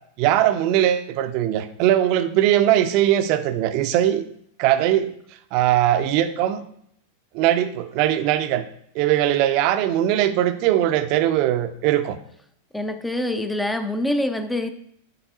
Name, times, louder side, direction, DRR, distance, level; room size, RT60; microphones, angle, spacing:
voice 1, 0.2-4.2 4.6-5.1 5.5-6.6 7.3-8.6 8.9-12.2, right 12 dB, 45° right, 10 dB, 0.5 m, -20 dB
voice 2, 12.7-14.7, left 1 dB, 5° left, 9 dB, 0.5 m, -25 dB
9.1 x 3.9 x 2.7 m, 0.69 s
figure-of-eight pair, 90°, 0 cm